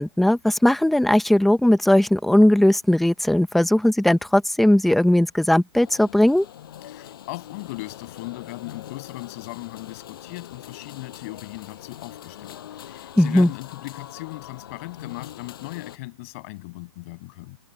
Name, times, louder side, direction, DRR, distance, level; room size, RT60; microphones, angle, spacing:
voice 1, 0.0-6.4 13.2-13.5, left 1 dB, ahead, 0.7 m, -18 dB
sound 1, 5.7-16.0, left 11 dB, 50° left, 5.2 m, -42 dB
voice 2, 6.8-17.6, left 23 dB, 30° left, 6.2 m, -38 dB
hypercardioid pair, 175°, 15 cm